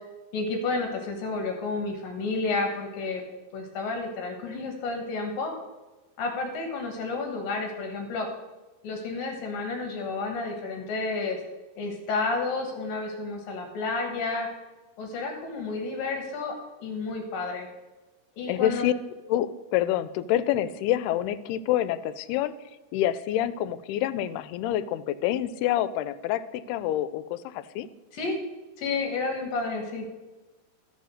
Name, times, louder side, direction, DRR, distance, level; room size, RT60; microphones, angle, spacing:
voice 1, 0.3-3.2 3.5-5.5 6.2-8.3 8.8-11.4 11.8-14.5 15.0-17.7 18.4-18.9 28.1-28.4 28.8-30.1, left 3 dB, 70° left, 3 dB, 2.9 m, -31 dB
voice 2, 18.5-18.9 19.3-22.5 22.9-27.9, left 12 dB, 85° left, 15 dB, 2.5 m, -27 dB
13.0 x 5.4 x 6.4 m, 1.1 s
omnidirectional pair, 4.5 m